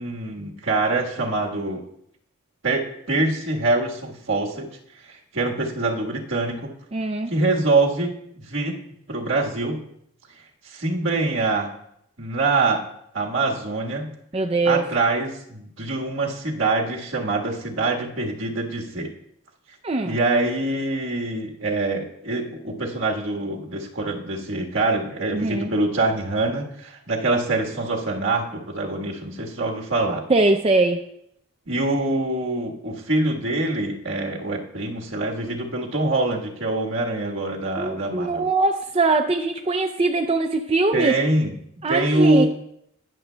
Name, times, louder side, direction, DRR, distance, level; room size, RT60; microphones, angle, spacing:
voice 1, 0.0-1.8 2.6-4.7 5.1-6.7 7.3-8.8 9.1-9.8 10.6-11.7 12.2-12.8 13.1-14.1 14.6-19.1 20.0-30.2 31.7-38.4 40.9-41.5 41.9-42.5, right 2 dB, 65° right, 0 dB, 1.5 m, -24 dB
voice 2, 6.9-7.3 14.3-14.8 19.8-20.2 25.3-25.7 30.3-31.0 37.8-41.1 41.8-42.5, right 3 dB, 25° right, 4 dB, 0.4 m, -21 dB
19.0 x 7.0 x 2.2 m, 0.73 s
head